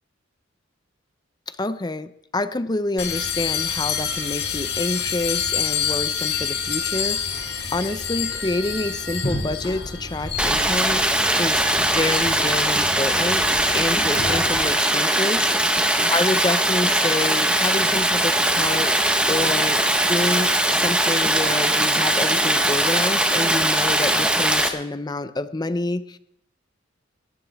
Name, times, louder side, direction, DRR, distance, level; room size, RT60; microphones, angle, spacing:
voice 1, 1.5-11.0 11.4-13.5 13.7-15.5 16.1-18.9 19.3-19.8 20.1-26.2, left 2 dB, 20° left, 13 dB, 0.5 m, -27 dB
sound 1, 3.0-14.6, left 6 dB, 55° left, 2.0 m, -28 dB
Stream, 10.4-24.7, right 1 dB, 5° right, 1.0 m, -20 dB
18.5 x 14.0 x 3.5 m, 0.75 s
head